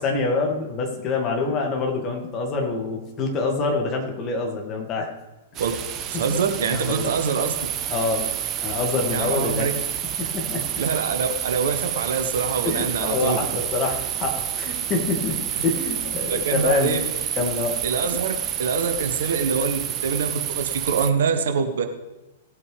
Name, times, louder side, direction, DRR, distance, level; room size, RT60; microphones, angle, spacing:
voice 1, 0.0-5.1 6.1-6.2 6.7-7.1 7.9-8.3 8.6-9.7 10.2-10.6 12.6-15.4 15.6-17.0 17.4-17.8, left 3 dB, 30° left, 1 dB, 2.3 m, -26 dB
sound 1, 5.5-21.1, right 10 dB, 30° right, 0.8 m, -29 dB
voice 2, 6.1-7.7 9.1-9.7 10.8-13.4 16.3-17.0 17.8-18.3 18.6-21.9, right 5 dB, 60° right, 6 dB, 1.1 m, -25 dB
18.0 x 8.5 x 3.5 m, 1.0 s
figure-of-eight pair, 100°, 0 cm